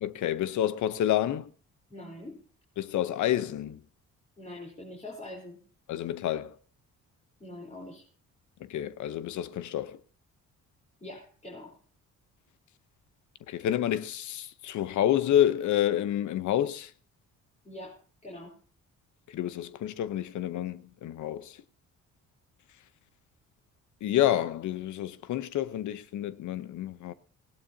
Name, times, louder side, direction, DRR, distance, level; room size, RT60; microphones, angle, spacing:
voice 1, 0.0-1.5 2.8-3.8 5.9-6.6 8.6-10.0 13.5-16.9 19.3-21.6 24.0-27.1, left 11 dB, 75° left, 0.8 m, -29 dB
voice 2, 1.9-2.4 4.4-5.6 7.4-8.0 11.0-11.8 17.6-18.0 18.2-18.6, left 1 dB, 25° left, 3.7 m, -43 dB
19.0 x 16.5 x 2.8 m
cardioid pair, 90°, 30 cm